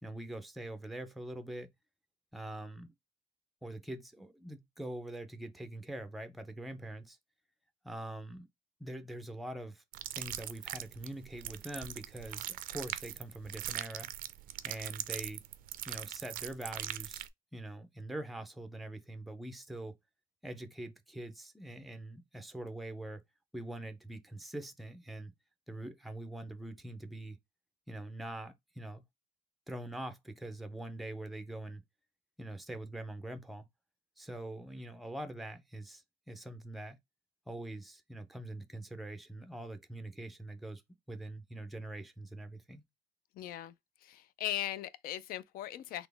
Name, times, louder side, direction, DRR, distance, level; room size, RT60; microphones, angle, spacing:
voice 1, 0.0-1.7 2.3-2.9 3.6-7.2 7.8-8.5 8.8-9.8 10.1-14.1 14.6-15.4 15.9-20.0 20.4-23.2 23.5-25.3 25.7-27.4 27.9-29.0 29.7-31.8 32.4-33.7 34.2-37.0 37.5-40.8 41.1-42.8, right 1 dB, ahead, 0.4 m, -43 dB
sound 1, 9.9-17.3, right 13 dB, 60° right, 0.4 m, -41 dB
voice 2, 43.3-43.7 44.0-46.1, left 12 dB, 65° left, 0.4 m, -39 dB
4.1 x 2.9 x 3.3 m
cardioid pair, 170°, 16 cm